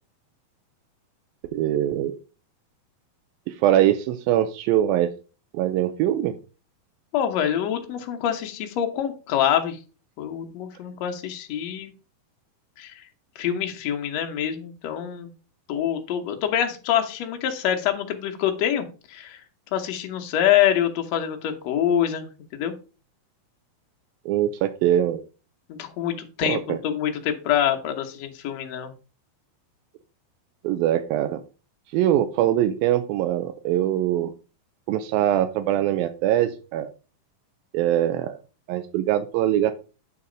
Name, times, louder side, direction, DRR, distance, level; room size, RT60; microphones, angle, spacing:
voice 1, 1.5-2.2 3.5-5.1 5.5-6.3 24.3-25.2 26.5-26.8 30.6-31.4 31.9-34.3 34.9-36.9 37.7-38.4 38.7-39.7, right 12 dB, 85° right, 10 dB, 2.4 m, -22 dB
voice 2, 7.1-9.8 10.2-11.9 12.8-13.0 13.4-15.3 15.7-19.4 19.7-22.3 22.5-22.7 25.7-28.9, left 10 dB, 65° left, 5 dB, 1.8 m, -25 dB
8.6 x 4.2 x 4.9 m, 0.34 s
omnidirectional pair, 4.1 m